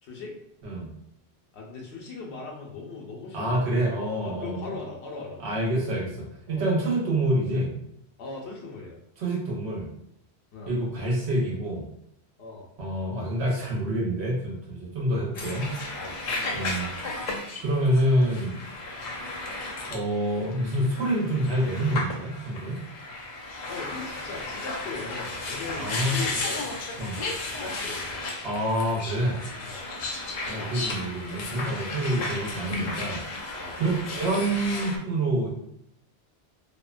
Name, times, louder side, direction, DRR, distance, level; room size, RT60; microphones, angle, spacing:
voice 1, 0.0-0.3 1.5-3.6 4.2-5.4 6.5-6.7 8.2-9.0 10.5-10.7 12.4-12.7 15.9-16.2 23.7-26.7 27.5-28.1 29.6-29.8 33.6-33.8, left 3 dB, 90° left, -1 dB, 0.9 m, -39 dB
voice 2, 3.3-4.8 5.4-7.7 9.2-9.9 10.7-11.8 12.8-15.7 16.5-17.3 17.6-18.6 19.9-22.8 25.8-26.2 27.0-27.2 28.4-29.4 30.5-33.2 33.8-35.5, right 1 dB, 80° right, -3 dB, 1.1 m, -27 dB
sound 1, 15.3-35.0, left 2 dB, 55° left, 0.5 m, -34 dB
2.7 x 2.1 x 2.3 m, 0.76 s
omnidirectional pair, 1.1 m